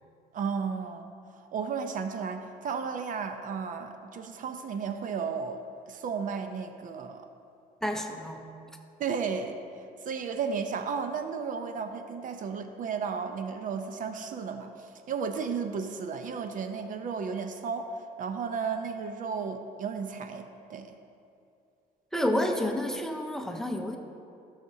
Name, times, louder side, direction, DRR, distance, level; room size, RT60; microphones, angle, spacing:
voice 1, 0.3-1.1 1.5-7.3 9.0-9.6 10.0-21.0, right 5 dB, 50° right, 7 dB, 0.6 m, -34 dB
voice 2, 7.8-8.5 22.1-24.0, left 1 dB, 5° left, 4 dB, 0.7 m, -29 dB
14.0 x 6.5 x 2.8 m, 2.5 s
cardioid pair, 110°, 17 cm